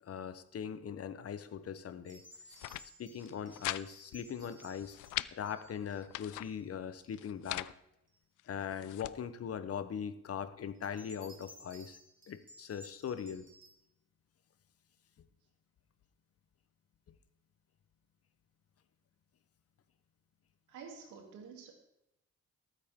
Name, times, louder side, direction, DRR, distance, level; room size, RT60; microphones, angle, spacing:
voice 1, 0.0-2.2 3.0-5.0 5.3-7.7 8.5-12.0 12.3-13.5, left 8 dB, 50° left, 13 dB, 1.0 m, -40 dB
sound 1, 2.1-6.6 7.0-7.5 8.1-8.2 10.8-13.7, equal, 25° right, 4.0 m, -58 dB
sound 2, 2.3-2.8 3.2-3.8 4.1-4.2 4.6-5.3 5.9-6.5 7.1-7.7 8.4-9.1, left 16 dB, 85° left, 0.5 m, -41 dB
voice 2, 20.7-21.7, right 5 dB, 85° right, 1 dB, 3.0 m, -49 dB
19.0 x 9.4 x 3.7 m, 0.84 s
cardioid pair, 90°, 30 cm